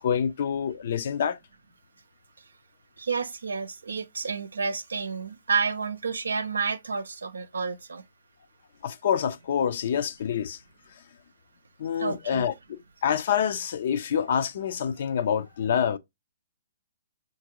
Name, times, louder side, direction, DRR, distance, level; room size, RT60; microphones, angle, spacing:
voice 1, 0.0-1.4 8.8-10.6 11.8-16.0, left 8 dB, 60° left, 0.5 m, -27 dB
voice 2, 3.0-8.0 12.0-12.5, right 5 dB, 85° right, 0.4 m, -30 dB
5.8 x 2.6 x 2.9 m
hypercardioid pair, 135°, 0 cm